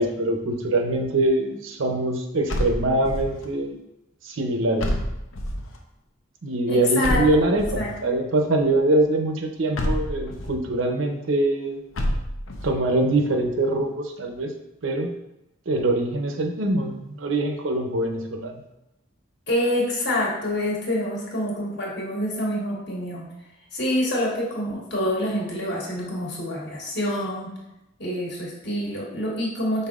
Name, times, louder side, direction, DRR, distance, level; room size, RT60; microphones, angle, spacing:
voice 1, 0.0-3.8 4.2-4.9 6.4-11.8 12.6-14.5 14.8-15.1 15.7-18.6, right 2 dB, 75° right, 4 dB, 0.6 m, -23 dB
sound 1, 2.5-3.4 4.8-5.8 7.0-8.0 9.7-10.6 11.9-12.8, equal, 85° left, 0.6 m, -28 dB
voice 2, 6.7-7.4 7.8-7.9 19.5-23.3 23.7-27.6 28.0-29.9, left 1 dB, 55° left, -4 dB, 1.4 m, -26 dB
5.4 x 4.0 x 2.4 m, 0.91 s
head